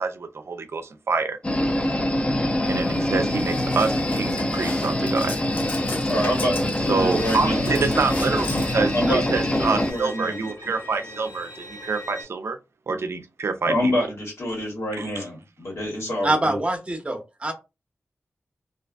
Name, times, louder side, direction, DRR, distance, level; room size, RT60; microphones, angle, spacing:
voice 1, 0.0-1.4 2.7-5.3 6.9-12.6 12.9-13.9 15.0-15.1, right 4 dB, 65° right, 0.4 m, -26 dB
sound 1, 1.4-9.9, left 1 dB, 25° left, 0.5 m, -24 dB
sound 2, 2.6-10.0, left 2 dB, 50° left, 0.8 m, -37 dB
voice 2, 6.0-7.7 8.9-10.4 13.6-16.6, equal, 85° left, 1.3 m, -27 dB
Bowed string instrument, 7.2-12.2, left 1 dB, 65° left, 1.3 m, -41 dB
voice 3, 16.2-17.5, right 2 dB, 25° right, 0.6 m, -24 dB
2.4 x 2.4 x 2.3 m
wide cardioid pair, 90°, 5 cm